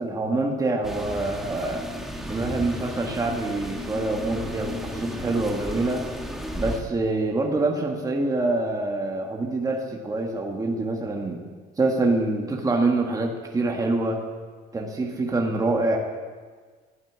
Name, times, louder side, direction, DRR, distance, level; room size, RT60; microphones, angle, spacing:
voice 1, 0.0-1.9 2.2-6.0 6.5-11.4 11.8-14.2 14.7-16.0, right 2 dB, 20° right, 1 dB, 1.9 m, -25 dB
sound 1, 0.8-6.8, equal, ahead, 1.6 m, -34 dB
12.0 x 11.0 x 8.7 m, 1.5 s
cardioid pair, 110°, 17 cm